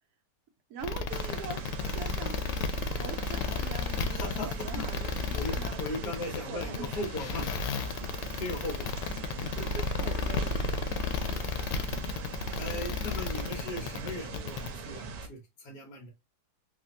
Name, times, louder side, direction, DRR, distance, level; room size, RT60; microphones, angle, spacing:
voice 1, 0.7-1.6 1.9-2.3 3.0-6.1 6.5-7.0 9.6-10.5 12.7-12.9, right 5 dB, 70° right, 1.2 m, -43 dB
sound 1, 0.8-14.7, left 4 dB, 90° left, 1.2 m, -32 dB
sound 2, 1.1-15.3, right 4 dB, 90° right, 1.3 m, -42 dB
voice 2, 4.1-4.8 5.3-8.1 8.4-9.5 11.3-12.1 12.6-16.1, left 1 dB, 60° left, 1.6 m, -39 dB
3.6 x 2.6 x 2.5 m
omnidirectional pair, 1.8 m